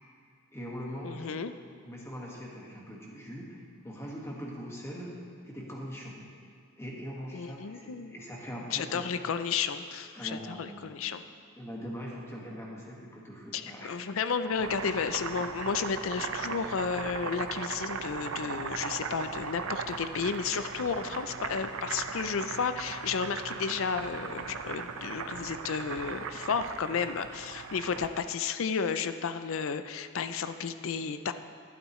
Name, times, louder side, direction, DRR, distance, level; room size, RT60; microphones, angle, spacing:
voice 1, 0.5-1.3 1.8-5.1 5.4-6.2 6.8-9.1 10.1-10.8 11.6-13.9, equal, 15° left, -3 dB, 1.7 m, -41 dB
voice 2, 1.0-1.5 7.3-8.1 8.7-11.2 13.5-31.3, left 6 dB, 65° left, 10 dB, 0.5 m, -32 dB
Boiling, 14.4-28.2, right 5 dB, 75° right, 0.6 m, -38 dB
12.0 x 11.0 x 3.1 m, 2.4 s
head